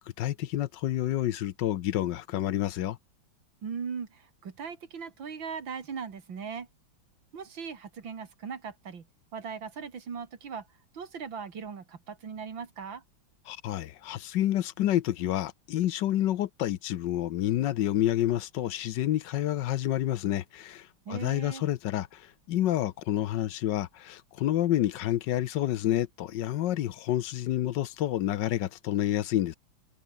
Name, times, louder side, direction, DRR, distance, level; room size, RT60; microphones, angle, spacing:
voice 1, 0.2-3.0 13.5-22.2 22.5-29.6, left 13 dB, 70° left, 1.4 m, -29 dB
voice 2, 3.6-6.7 7.3-9.0 9.3-10.6 10.9-13.0 21.1-21.6, right 6 dB, 85° right, 3.1 m, -39 dB
omnidirectional pair, 2.1 m